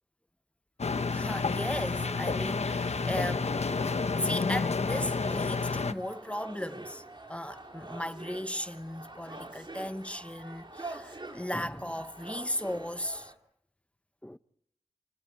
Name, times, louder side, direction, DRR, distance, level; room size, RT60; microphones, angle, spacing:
sound 1, 0.8-5.9, left 4 dB, 75° left, 1.1 m, -30 dB
sound 2, 0.9-13.3, right 2 dB, 45° right, 3.8 m, -46 dB
voice 1, 1.1-3.9 4.2-7.0 7.3-13.3 14.2-14.4, left 1 dB, 10° left, 1.0 m, -36 dB
29.5 x 29.5 x 4.4 m
wide cardioid pair, 55°, 11 cm